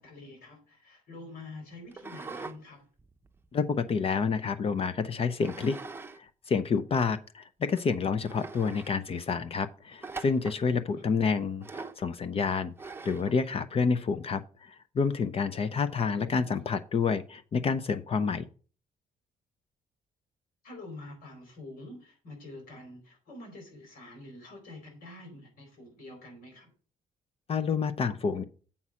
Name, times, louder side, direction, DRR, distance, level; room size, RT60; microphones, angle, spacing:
voice 1, 0.0-2.9 10.9-11.0 16.2-16.5 20.6-26.7, left 2 dB, 85° left, 2 dB, 4.3 m, -47 dB
sound 1, 1.9-2.6 3.0-4.4 5.4-6.2 6.5-6.6 7.3-7.4 7.8-7.9 8.2-8.9 10.0-10.6 11.6-12.0 12.8-13.4, right 4 dB, 15° right, 0.7 m, -42 dB
voice 2, 3.5-5.8 6.2-18.5 27.5-28.4, left 5 dB, 40° left, 12 dB, 0.6 m, -29 dB
7.2 x 5.5 x 6.2 m, 0.40 s
cardioid pair, 105°, 14 cm